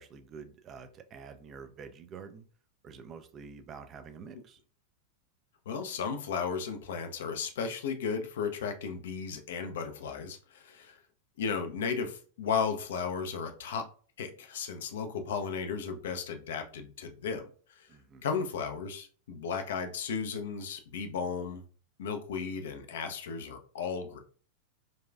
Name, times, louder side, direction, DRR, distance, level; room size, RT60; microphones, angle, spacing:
voice 1, 0.0-2.5 2.8-4.6 17.9-18.3, right 6 dB, 30° right, 9 dB, 0.4 m, -47 dB
voice 2, 5.7-11.0 11.4-13.9 14.2-17.9 18.2-21.6 22.0-24.2, left 6 dB, 60° left, 6 dB, 0.5 m, -35 dB
4.0 x 2.3 x 2.3 m, 0.41 s
figure-of-eight pair, 90°, 0 cm